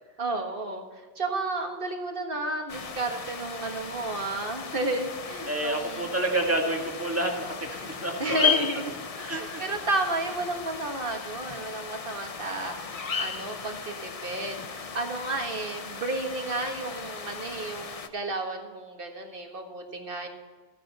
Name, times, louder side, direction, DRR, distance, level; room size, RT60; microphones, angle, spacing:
voice 1, 0.2-6.1 8.2-9.0 9.3-20.3, right 2 dB, 60° right, 4 dB, 1.7 m, -32 dB
sound 1, 2.7-18.1, left 6 dB, 40° left, 0.7 m, -35 dB
voice 2, 5.5-8.5 9.2-9.6, right 1 dB, 15° right, 0 dB, 1.9 m, -29 dB
14.5 x 9.8 x 4.1 m, 1.4 s
omnidirectional pair, 1.1 m